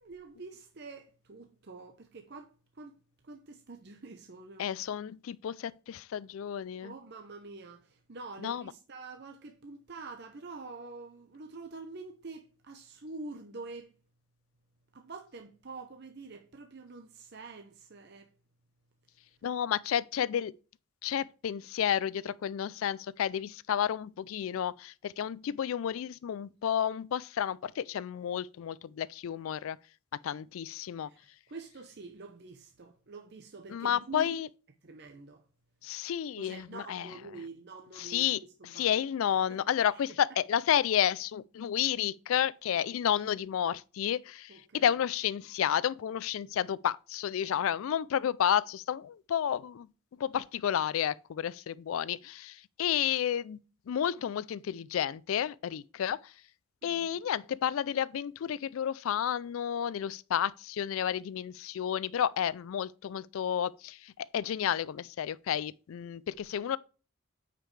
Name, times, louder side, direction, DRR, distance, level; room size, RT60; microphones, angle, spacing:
voice 1, 0.0-3.0 3.2-4.7 6.8-14.0 14.9-18.3 31.0-34.4 34.8-35.4 36.4-38.9 39.9-40.0 44.5-44.9 56.8-57.1, right 3 dB, 50° right, 0.7 m, -46 dB
voice 2, 4.6-6.9 8.4-8.6 19.4-20.5 21.0-29.8 30.2-31.1 33.7-34.5 35.8-37.1 38.0-49.9 50.2-53.6 53.9-56.3 56.8-66.8, left 9 dB, 75° left, 0.3 m, -31 dB
9.0 x 5.1 x 3.2 m
head